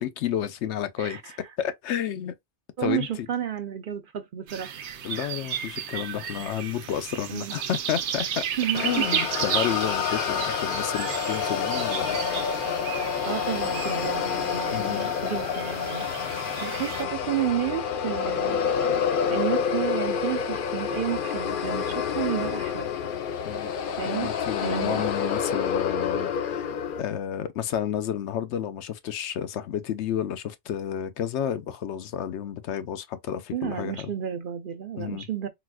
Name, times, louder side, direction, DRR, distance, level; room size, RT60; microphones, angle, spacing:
voice 1, 0.0-1.2 1.6-2.3 2.8-3.1 5.0-8.5 8.8-12.2 14.7-15.1 23.4-23.7 24.1-26.7 27.0-34.1 35.0-35.3, left 9 dB, 85° left, 0.9 m, -31 dB
voice 2, 1.0-1.4 2.8-4.7 7.3-7.5 8.6-9.0 10.4-10.5 13.3-18.6 19.3-22.9 24.0-24.3 24.6-25.0 33.5-35.5, right 10 dB, 55° right, 0.7 m, -31 dB
sound 1, 4.5-17.0, right 8 dB, 85° right, 0.9 m, -34 dB
sound 2, 8.7-27.0, left 7 dB, 60° left, 0.7 m, -28 dB
3.9 x 2.4 x 2.2 m
omnidirectional pair, 1.1 m